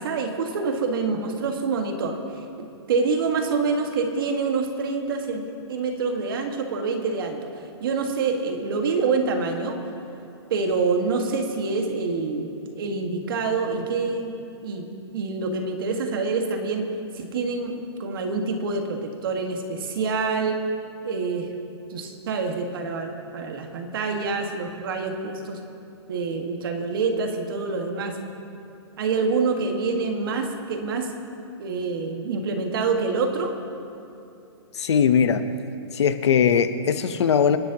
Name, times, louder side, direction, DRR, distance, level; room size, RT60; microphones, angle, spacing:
voice 1, 0.0-2.2 2.6-5.4 5.7-7.4 7.8-9.8 10.5-12.5 12.8-14.3 14.6-14.9 15.1-16.9 17.1-20.6 21.0-21.5 21.9-25.6 26.1-28.2 29.0-31.1 31.6-33.5, right 4 dB, 55° right, 4 dB, 1.7 m, -26 dB
voice 2, 34.7-35.5 35.9-37.6, left 7 dB, 75° left, 10 dB, 0.9 m, -20 dB
27.0 x 11.0 x 2.9 m, 2.8 s
hypercardioid pair, 165°, 14 cm